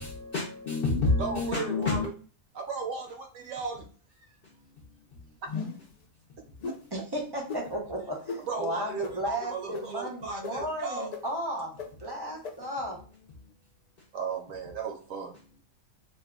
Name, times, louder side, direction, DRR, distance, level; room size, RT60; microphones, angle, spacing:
voice 1, 0.0-2.1, left 3 dB, 55° left, -2 dB, 0.7 m, -28 dB
voice 2, 1.2-2.0 2.5-3.8 5.4-5.5 6.7-6.8 8.4-11.1 14.1-15.3, right 5 dB, 70° right, 3 dB, 1.0 m, -35 dB
sound 1, 5.5-5.9 6.6-6.8 7.5-7.6 8.3-8.4 9.0-9.1 9.7-9.8 10.4-10.5 11.1-11.2 11.8-11.9 12.4-12.5, left 4 dB, 80° left, 0.3 m, -35 dB
voice 3, 6.9-11.7 12.0-13.0, equal, 35° right, -1 dB, 0.3 m, -34 dB
2.7 x 2.2 x 3.5 m, 0.39 s
omnidirectional pair, 1.5 m